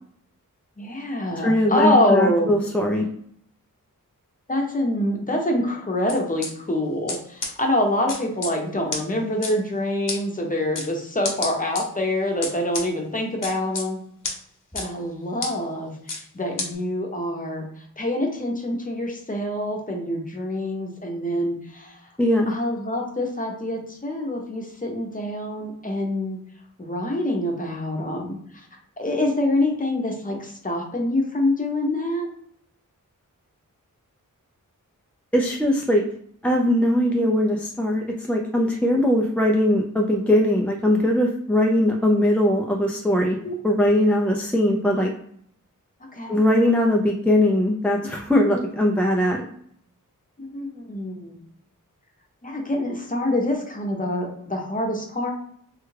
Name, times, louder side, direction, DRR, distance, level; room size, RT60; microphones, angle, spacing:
voice 1, 0.8-2.5 4.5-14.0 14.7-17.7 18.0-22.0 22.5-26.4 26.8-28.4 29.0-32.3 43.4-43.5 46.1-46.4 50.4-51.4 52.4-55.3, left 1 dB, 25° left, 1 dB, 0.7 m, -25 dB
voice 2, 1.4-3.1 22.2-22.5 35.3-36.0 36.4-43.4 43.6-45.1 46.3-49.4, left 1 dB, 5° left, 0 dB, 0.3 m, -20 dB
sound 1, 6.1-6.5 7.1-7.2 7.4-7.5 8.1-8.5 8.9-9.0 9.4-9.5 10.1-10.2 10.7-10.9 11.2-11.8 12.4-12.8 13.4-13.8 14.2-14.3 14.7-14.9 15.4-15.5 16.1-16.2 16.6-16.7, left 3 dB, 70° left, 0.9 m, -28 dB
3.3 x 2.3 x 3.2 m, 0.65 s
wide cardioid pair, 100°, 33 cm